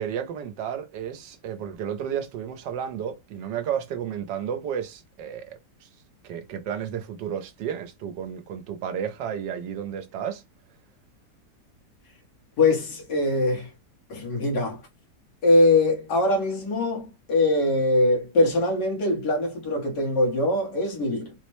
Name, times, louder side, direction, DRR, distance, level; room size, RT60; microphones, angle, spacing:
voice 1, 0.0-5.9 6.2-10.4, right 8 dB, 85° right, 1.3 m, -32 dB
voice 2, 12.6-13.7 14.1-14.8 15.4-21.3, left 2 dB, 80° left, 1.8 m, -22 dB
4.1 x 2.1 x 3.0 m
omnidirectional pair, 1.8 m